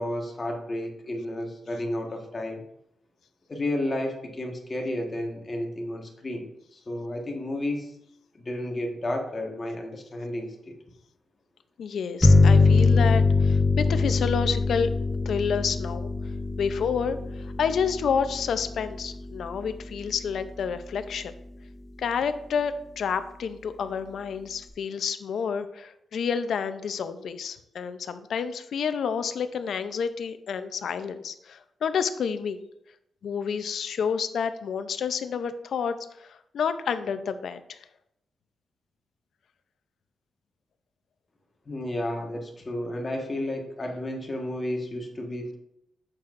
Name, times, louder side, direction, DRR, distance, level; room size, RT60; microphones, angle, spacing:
voice 1, 0.0-2.6 3.5-6.4 6.7-7.9 8.3-10.7 41.7-45.6, left 1 dB, 25° left, 1 dB, 1.5 m, -32 dB
voice 2, 11.8-14.9 15.3-16.1 16.6-21.3 22.0-32.6 33.2-37.8, left 6 dB, 70° left, 11 dB, 0.6 m, -29 dB
sound 1, 12.2-21.5, left 3 dB, 5° left, 0.8 m, -24 dB
8.6 x 7.5 x 2.6 m, 0.79 s
cardioid pair, 120°, 0 cm